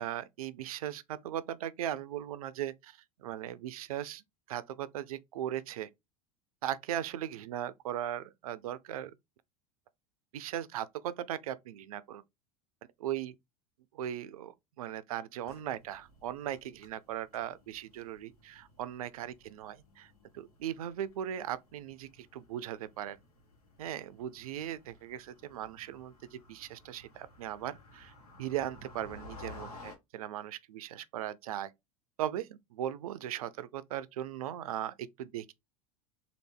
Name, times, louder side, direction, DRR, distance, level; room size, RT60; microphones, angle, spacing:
voice 1, 0.0-4.2 4.5-5.9 6.6-9.1 10.3-12.2 13.0-13.3 14.0-23.2 23.8-28.1 28.4-31.7 32.2-35.5, right 11 dB, 80° right, 0.4 m, -38 dB
sound 1, 15.5-30.0, left 3 dB, 85° left, 1.0 m, -55 dB
3.2 x 2.4 x 3.3 m
hypercardioid pair, 85°, 18 cm